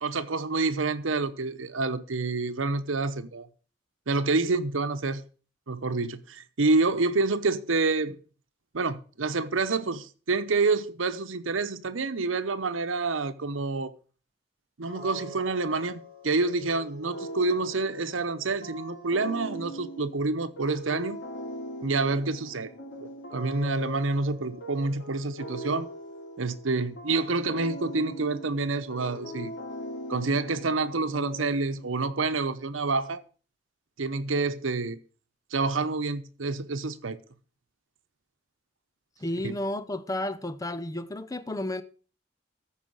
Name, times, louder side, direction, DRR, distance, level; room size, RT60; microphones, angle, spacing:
voice 1, 0.0-3.5 4.1-5.2 5.7-8.2 8.7-13.9 14.8-21.2 21.8-22.7 23.0-25.9 26.4-29.5 30.1-33.2 34.0-35.0 35.5-37.2 39.4-39.5, right 3 dB, 90° right, 0.9 m, -28 dB
sound 1, 14.9-32.1, equal, 65° left, 3.1 m, -41 dB
voice 2, 39.2-41.8, left 1 dB, 20° left, 0.6 m, -32 dB
14.0 x 5.0 x 6.3 m
head